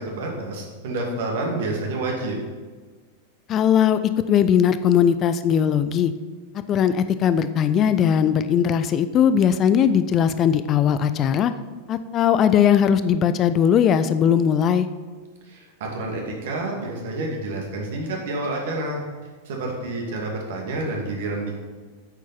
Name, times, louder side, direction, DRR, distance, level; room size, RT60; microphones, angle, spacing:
voice 1, 0.0-2.4 15.4-19.0 19.4-21.6, right 2 dB, 55° right, 0 dB, 2.5 m, -29 dB
voice 2, 3.5-6.1 6.7-11.5 11.9-14.9, left 8 dB, 30° left, 12 dB, 0.6 m, -19 dB
9.0 x 7.3 x 6.0 m, 1.4 s
figure-of-eight pair, 90°, 0 cm